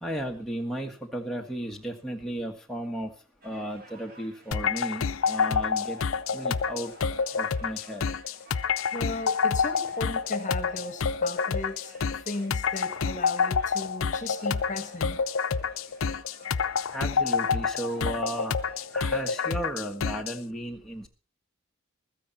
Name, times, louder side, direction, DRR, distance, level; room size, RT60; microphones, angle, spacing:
voice 1, 0.0-3.1 3.4-6.0 6.3-6.9 7.3-8.1 16.9-18.6 18.9-21.1, right 1 dB, ahead, 0 dB, 1.5 m, -34 dB
sound 1, 3.4-19.4, right 2 dB, 45° right, 2.7 m, -54 dB
sound 2, 4.5-20.4, left 5 dB, 80° left, 0.6 m, -28 dB
voice 2, 8.9-15.2, left 2 dB, 35° left, 10 dB, 1.5 m, -36 dB
15.0 x 13.5 x 4.1 m, 0.34 s
head